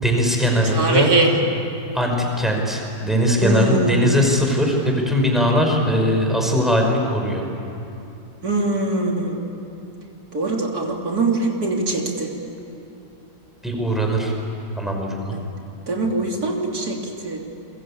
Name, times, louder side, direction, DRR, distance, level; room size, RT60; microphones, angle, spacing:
voice 1, 0.0-1.1 1.9-7.4 13.6-14.3 14.8-15.4, equal, ahead, 1 dB, 4.8 m, -20 dB
voice 2, 0.7-1.3 3.4-4.2 8.4-9.4 10.3-12.3 15.3-15.4 15.9-17.4, right 2 dB, 55° right, 0 dB, 3.6 m, -22 dB
29.5 x 23.0 x 8.6 m, 2.8 s
omnidirectional pair, 2.0 m